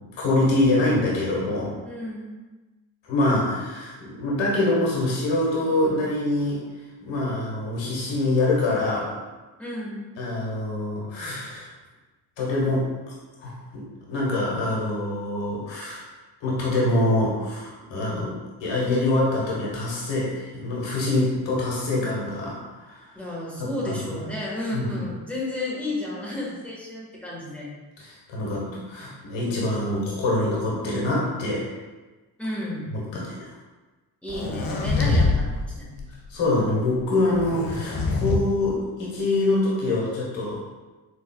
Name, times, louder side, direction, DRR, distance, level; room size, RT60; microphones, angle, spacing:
voice 1, 0.2-1.7 3.0-6.6 7.0-9.1 10.2-11.7 12.4-12.9 13.4-16.0 16.4-23.1 23.6-24.1 24.7-25.0 28.0-31.6 32.9-33.4 36.3-40.6, left 2 dB, 65° left, -5 dB, 1.5 m, -25 dB
voice 2, 1.8-2.4 9.6-10.1 23.1-27.7 32.4-32.9 34.2-36.0, left 1 dB, 5° left, -6 dB, 1.4 m, -32 dB
sound 1, 34.3-35.4 35.7-36.1 37.3-38.4, left 3 dB, 45° left, 0.8 m, -24 dB
4.5 x 2.6 x 2.3 m, 1.2 s
supercardioid pair, 55°, 48 cm